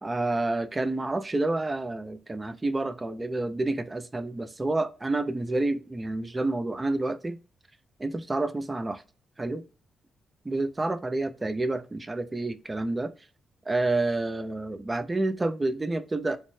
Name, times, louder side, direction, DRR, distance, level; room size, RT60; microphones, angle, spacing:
voice 1, 0.0-7.4 8.0-9.0 9.4-9.6 10.5-13.1 13.7-16.4, right 2 dB, 15° right, 0.3 m, -29 dB
3.3 x 2.0 x 3.0 m
cardioid pair, 140°, 0 cm